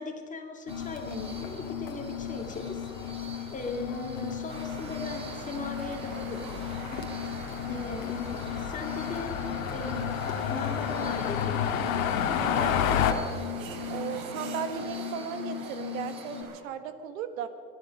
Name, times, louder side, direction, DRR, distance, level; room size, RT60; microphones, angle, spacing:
voice 1, 0.0-2.9 3.5-7.1 7.7-10.1 10.5-11.6, left 3 dB, 20° left, 3 dB, 2.4 m, -38 dB
sound 1, 0.7-13.1, left 9 dB, 80° left, 1.9 m, -32 dB
Glass, 0.7-16.4, left 8 dB, 15° right, 2.5 m, -38 dB
sound 2, 4.5-16.6, right 4 dB, 55° right, 2.8 m, -43 dB
voice 2, 12.2-13.3 13.9-17.5, right 8 dB, 75° right, 10 dB, 1.7 m, -36 dB
25.0 x 10.5 x 5.3 m, 2.5 s
supercardioid pair, 115°, 41 cm